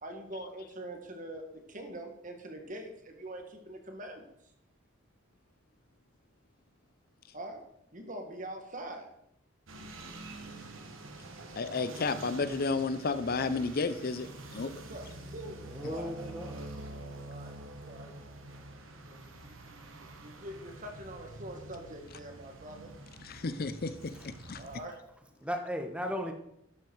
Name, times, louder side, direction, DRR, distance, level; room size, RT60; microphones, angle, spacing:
voice 1, 0.0-4.3 7.3-7.6 7.9-9.1 14.8-16.2 17.2-17.6 17.9-18.1 19.0-22.9 24.6-25.0, right 1 dB, 40° right, 4 dB, 1.7 m, -44 dB
sound 1, 9.7-24.8, right 2 dB, 80° right, 1.6 m, -46 dB
voice 2, 11.6-14.7 23.2-24.1 24.5-24.6, left 4 dB, 50° left, 13 dB, 0.5 m, -32 dB
voice 3, 15.6-16.6 24.1-24.3 25.4-26.3, equal, 5° right, 4 dB, 1.1 m, -36 dB
12.0 x 8.0 x 4.6 m, 0.77 s
head